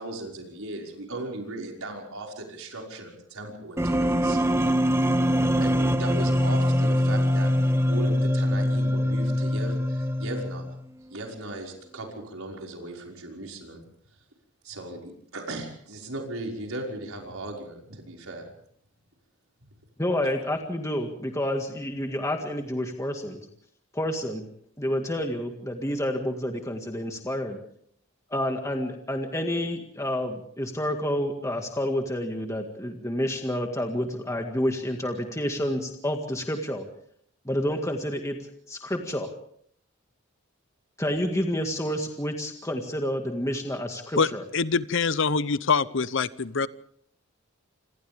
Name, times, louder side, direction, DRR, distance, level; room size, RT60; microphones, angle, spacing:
voice 1, 0.0-5.0 5.6-10.6 11.1-13.8 14.6-18.5, right 2 dB, 85° right, 5.7 m, -37 dB
sound 1, 3.8-10.8, equal, 10° right, 0.9 m, -23 dB
voice 2, 20.0-23.4 23.9-24.4 24.8-27.6 28.3-36.9 37.5-38.4 38.7-39.3 41.0-44.4, equal, 15° left, 1.9 m, -29 dB
voice 3, 44.2-46.7, left 5 dB, 60° left, 0.8 m, -25 dB
28.0 x 26.5 x 3.6 m
head